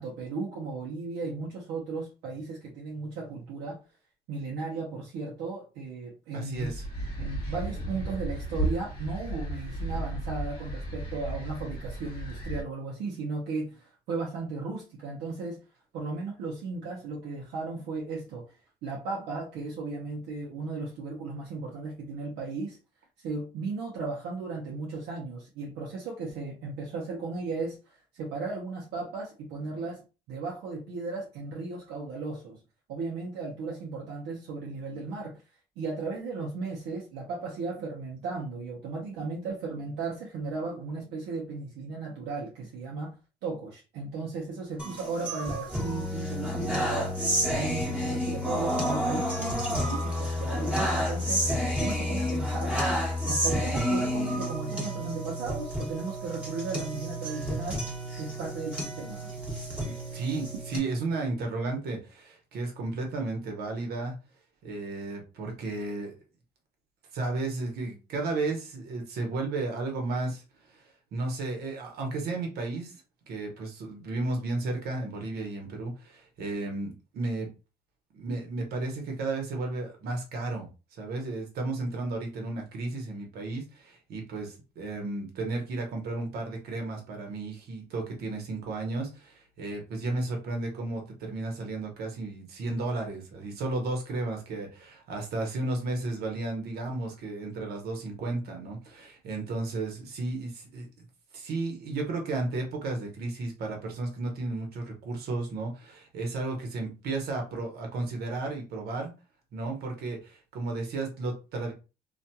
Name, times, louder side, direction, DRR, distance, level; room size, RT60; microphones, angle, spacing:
voice 1, 0.0-3.8 4.3-6.7 7.2-15.6 15.9-18.5 18.8-22.8 23.2-30.0 30.3-32.6 32.9-35.4 35.8-43.2 43.4-51.5 51.8-53.0 53.3-57.9 58.2-59.2, right 3 dB, 85° right, 0.7 m, -36 dB
voice 2, 6.3-6.7 59.8-64.1 64.6-66.1 67.1-70.4 70.7-70.8 71.1-73.0 73.3-77.5 78.1-80.7 81.0-100.9 101.3-109.1 109.5-111.7, right 2 dB, 70° right, 1.0 m, -33 dB
sound 1, 6.5-12.6, right 1 dB, 35° left, 0.9 m, -34 dB
sound 2, 44.8-60.8, equal, 5° right, 1.0 m, -30 dB
2.8 x 2.5 x 2.2 m
cardioid pair, 110°, 17 cm